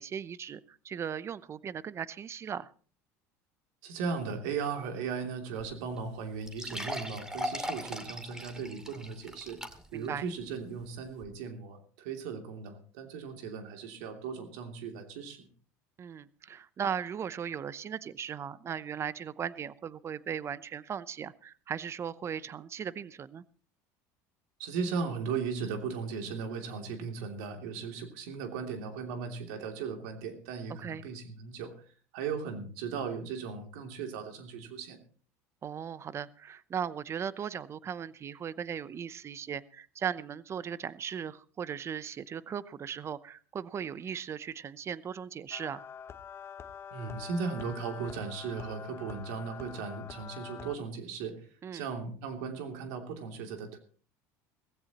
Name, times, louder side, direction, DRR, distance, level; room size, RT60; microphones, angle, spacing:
voice 1, 0.0-2.7 9.9-10.2 16.0-23.4 30.8-31.0 35.6-45.8 51.6-51.9, right 8 dB, 35° right, 17 dB, 0.8 m, -37 dB
voice 2, 3.8-9.6 9.9-15.5 24.6-31.7 32.1-35.0 46.9-51.5 51.7-53.8, right 5 dB, 75° right, 4 dB, 2.9 m, -37 dB
sound 1, 5.6-5.7 6.0-6.1 6.5-10.1 10.5-10.6 11.2-11.3, equal, 5° right, 2.2 m, -39 dB
sound 2, 45.5-50.8, left 7 dB, 30° left, 0.9 m, -45 dB
17.5 x 15.5 x 3.0 m, 0.41 s
supercardioid pair, 100°, 8 cm